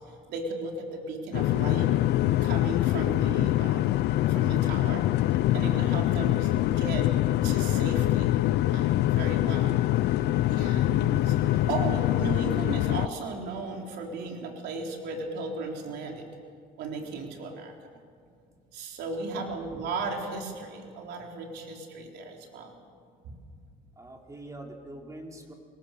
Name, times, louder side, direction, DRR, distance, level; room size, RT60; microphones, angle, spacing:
voice 1, 0.3-1.9 2.4-4.0 4.3-5.0 5.5-7.1 7.4-8.4 8.7-9.8 10.5-16.2 16.8-17.7 18.7-22.7 23.2-23.4, right 3 dB, 80° right, 1 dB, 4.3 m, -36 dB
sound 1, 1.3-13.1, left 14 dB, 80° left, 0.6 m, -24 dB
voice 2, 24.0-25.5, right 1 dB, 20° right, 1 dB, 4.1 m, -44 dB
26.5 x 22.0 x 6.9 m, 2.2 s
cardioid pair, 110°, 17 cm